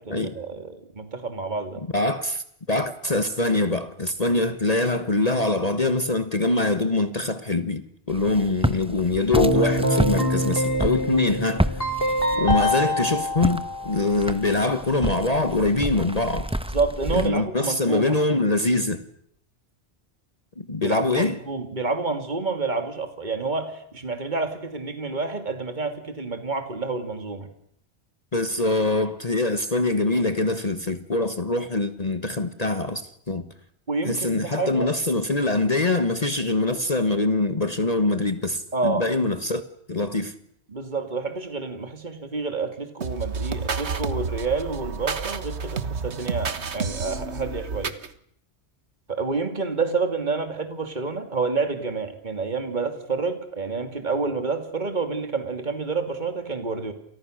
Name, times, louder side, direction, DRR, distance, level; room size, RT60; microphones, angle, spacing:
voice 1, 0.1-1.8 16.7-18.1 20.8-27.5 33.9-34.9 38.7-39.2 40.7-47.9 49.1-56.9, right 4 dB, 45° right, 2.7 m, -28 dB
voice 2, 1.9-11.7 12.3-16.5 17.1-19.0 20.6-21.3 28.3-33.5 34.0-39.6 39.9-40.3, left 2 dB, 35° left, 1.5 m, -24 dB
Walk footsteps, 8.1-17.3, equal, 5° right, 1.1 m, -30 dB
Keyboard (musical), 9.4-14.3, equal, 55° left, 4.9 m, -24 dB
sound 1, 43.0-48.1, right 5 dB, 80° right, 1.7 m, -30 dB
29.5 x 28.5 x 6.5 m
omnidirectional pair, 1.1 m